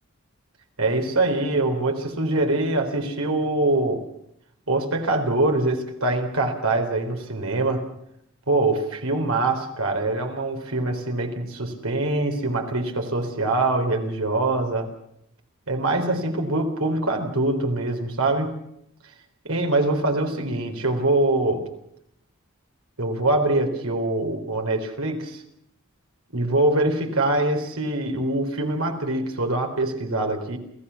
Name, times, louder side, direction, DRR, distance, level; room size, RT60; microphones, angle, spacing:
voice 1, 0.8-4.0 4.7-7.9 8.5-14.9 15.7-18.5 19.4-21.7 23.0-25.4 26.3-30.6, right 2 dB, 85° right, 4 dB, 3.9 m, -24 dB
28.5 x 16.5 x 7.1 m, 0.75 s
head